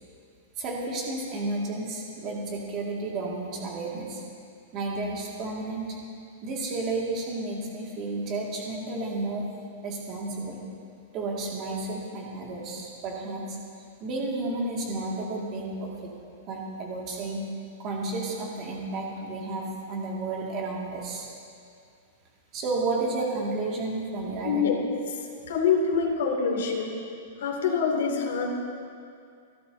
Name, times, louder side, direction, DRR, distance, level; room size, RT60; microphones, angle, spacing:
voice 1, 0.6-4.2 4.7-6.0 6.4-9.5 9.8-10.6 11.1-13.6 14.0-16.1 16.5-17.5 17.8-21.3 22.5-24.7, right 2 dB, 25° right, -3 dB, 2.1 m, -32 dB
voice 2, 24.4-24.8 25.5-27.0 27.4-28.5, left 6 dB, 70° left, 0 dB, 2.6 m, -25 dB
29.0 x 12.0 x 2.8 m, 2.4 s
supercardioid pair, 180°, 0 cm